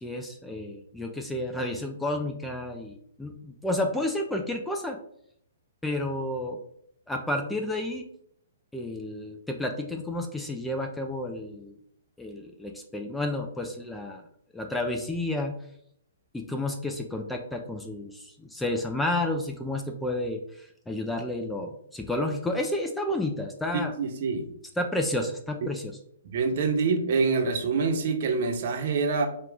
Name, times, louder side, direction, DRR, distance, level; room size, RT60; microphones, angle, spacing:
voice 1, 0.0-5.0 5.8-6.6 7.1-8.0 8.7-11.8 12.2-14.2 14.5-15.5 16.3-23.9 24.8-26.0, left 1 dB, 5° left, 3 dB, 0.4 m, -31 dB
voice 2, 24.0-24.5 26.2-29.3, right 4 dB, 55° right, 4 dB, 0.8 m, -26 dB
4.5 x 2.3 x 3.7 m, 0.68 s
hypercardioid pair, 140°, 0 cm